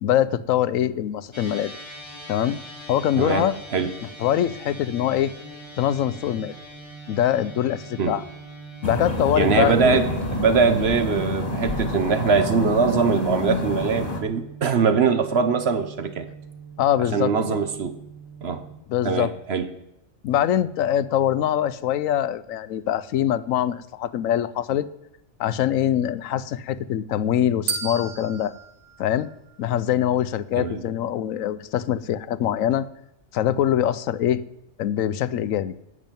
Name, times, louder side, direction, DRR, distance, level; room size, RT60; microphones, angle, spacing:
voice 1, 0.0-1.7 2.3-2.6 2.9-3.5 4.2-5.3 5.8-6.6 7.1-8.2 8.8-10.0 16.8-17.3 18.9-19.3 20.2-24.9 25.4-28.5 29.0-29.3 29.6-32.9 33.3-34.4 34.8-35.7, left 11 dB, 75° left, 16 dB, 1.0 m, -23 dB
sound 1, 1.3-18.8, right 3 dB, 20° right, 2.4 m, -42 dB
voice 2, 3.2-3.9 8.0-8.1 9.4-16.3 17.1-18.0 18.4-18.7 19.0-19.7 30.6-30.8, right 5 dB, 55° right, 10 dB, 1.1 m, -22 dB
sound 2, 8.8-14.2, left 2 dB, 30° left, 2.1 m, -28 dB
sound 3, 27.7-29.9, right 6 dB, 80° right, 1.5 m, -34 dB
11.0 x 6.3 x 9.0 m, 0.82 s
omnidirectional pair, 1.4 m